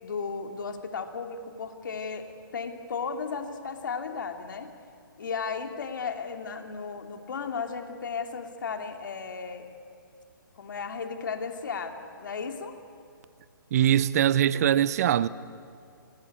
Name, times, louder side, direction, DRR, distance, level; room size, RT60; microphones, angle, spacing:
voice 1, 0.0-4.7 5.2-9.7 10.6-12.8, left 5 dB, 60° left, 2.9 m, -35 dB
voice 2, 13.7-15.3, right 10 dB, 45° right, 0.8 m, -22 dB
27.0 x 19.0 x 9.6 m
figure-of-eight pair, 135°, 12 cm